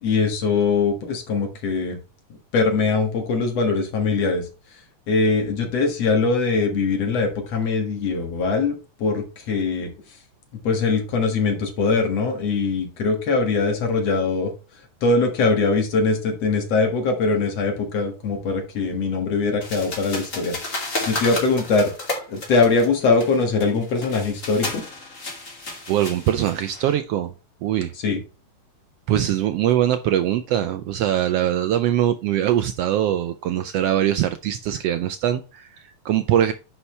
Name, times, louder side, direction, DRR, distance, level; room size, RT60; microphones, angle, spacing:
voice 1, 0.0-2.0 2.5-4.5 5.1-9.9 10.6-14.5 15.0-20.5 21.0-21.9 22.3-24.8 28.0-28.2, left 4 dB, 60° left, 4 dB, 2.6 m, -22 dB
sound 1, 19.6-26.9, left 2 dB, 25° left, 2.6 m, -32 dB
voice 2, 25.9-27.3 27.6-27.9 29.1-36.5, right 11 dB, 85° right, 9 dB, 1.4 m, -22 dB
10.0 x 5.6 x 3.2 m, 0.32 s
omnidirectional pair, 3.4 m